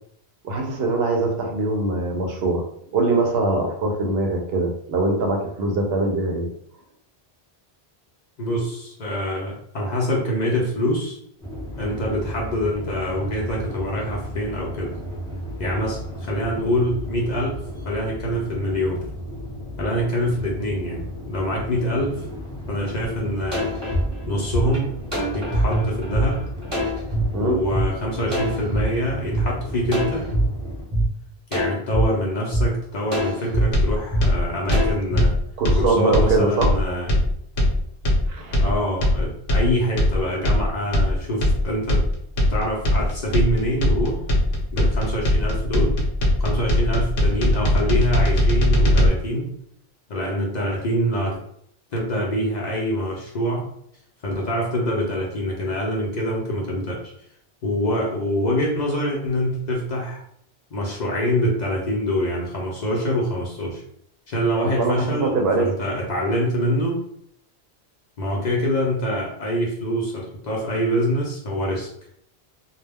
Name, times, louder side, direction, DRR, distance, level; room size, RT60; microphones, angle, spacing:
voice 1, 0.4-2.6 2.9-6.5 27.3-27.6 35.6-36.8 38.3-38.6 64.8-65.7, right 2 dB, 70° right, 1 dB, 0.8 m, -22 dB
voice 2, 8.4-11.2 11.8-15.0 15.6-17.6 17.8-19.0 19.8-22.3 22.7-23.7 24.3-24.9 25.3-26.4 27.4-30.3 31.5-35.3 35.8-37.1 38.6-42.0 42.4-44.2 44.7-46.0 46.4-49.5 50.1-51.4 51.9-53.6 54.2-57.0 57.6-60.2 60.7-63.8 64.3-67.0 68.2-71.9, equal, 50° left, -2 dB, 0.6 m, -25 dB
sound 1, 11.4-30.8, left 1 dB, 5° left, 0.6 m, -34 dB
sound 2, 23.5-27.2 27.7-27.8 28.3-29.4 29.9-30.4 30.9-31.0 31.5-32.0 32.5-32.6 33.1-33.6 34.1-34.2 34.7-35.2, right 1 dB, 25° right, 1.0 m, -23 dB
sound 3, 33.7-49.1, left 1 dB, 70° left, 0.9 m, -20 dB
2.3 x 2.1 x 3.3 m, 0.69 s
omnidirectional pair, 1.1 m